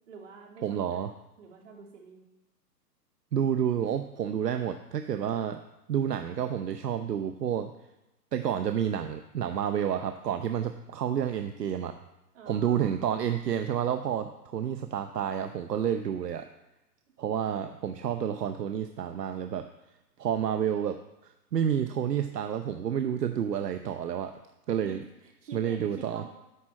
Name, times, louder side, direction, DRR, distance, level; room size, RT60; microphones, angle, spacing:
voice 1, 0.1-1.0 1.4-2.2 12.3-12.9 17.1-17.2 24.9-25.0 25.4-26.3, right 5 dB, 45° right, 0 dB, 2.6 m, -47 dB
voice 2, 0.6-1.1 3.3-5.6 5.9-7.7 8.3-11.9 12.5-16.5 17.2-19.7 20.2-24.3 24.7-25.0 25.5-26.2, right 9 dB, 70° right, 8 dB, 0.8 m, -30 dB
11.5 x 4.3 x 7.4 m, 0.97 s
hypercardioid pair, 165°, 50 cm